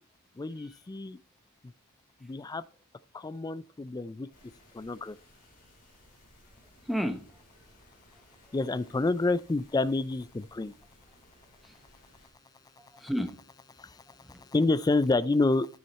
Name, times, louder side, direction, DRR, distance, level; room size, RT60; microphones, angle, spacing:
voice 1, 0.4-1.2 2.3-2.6 3.2-4.3 4.8-5.1 8.5-10.7 14.5-15.7, left 3 dB, 15° left, 0.3 m, -28 dB
sound 1, 4.3-12.3, left 1 dB, 40° left, 4.8 m, -60 dB
voice 2, 6.5-7.2 8.5-8.6 11.6-11.8 12.8-13.4 14.1-14.5, equal, ahead, 1.1 m, -35 dB
9.4 x 7.7 x 4.1 m
head